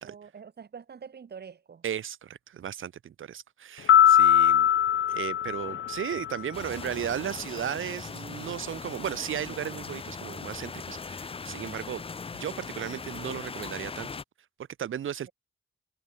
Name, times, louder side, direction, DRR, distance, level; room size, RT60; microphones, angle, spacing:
voice 1, 0.0-1.9 15.2-15.3, right 6 dB, 55° right, 7.8 m, -46 dB
voice 2, 1.8-4.7 5.1-12.0 12.3-14.1 14.8-15.3, right 9 dB, 90° right, 1.3 m, -35 dB
sound 1, 3.9-6.4, left 10 dB, 80° left, 0.8 m, -21 dB
sound 2, 6.5-14.2, left 5 dB, 30° left, 0.7 m, -39 dB
wide cardioid pair, 155°, 20 cm